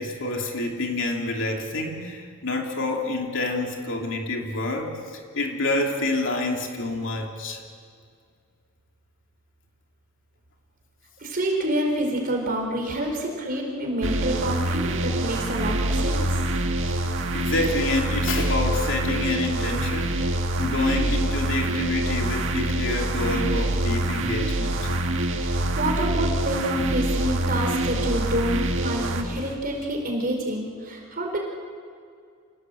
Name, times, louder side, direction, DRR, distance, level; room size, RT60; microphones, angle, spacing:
voice 1, 0.0-4.9 5.3-7.6 16.8-17.0 17.3-24.9, left 2 dB, 60° left, 1 dB, 3.0 m, -28 dB
voice 2, 11.2-16.5 25.4-31.4, right 1 dB, 40° right, 1 dB, 4.4 m, -28 dB
sound 1, 14.0-29.6, right 1 dB, 60° right, 1.9 m, -25 dB
27.5 x 18.0 x 7.9 m, 2.2 s
head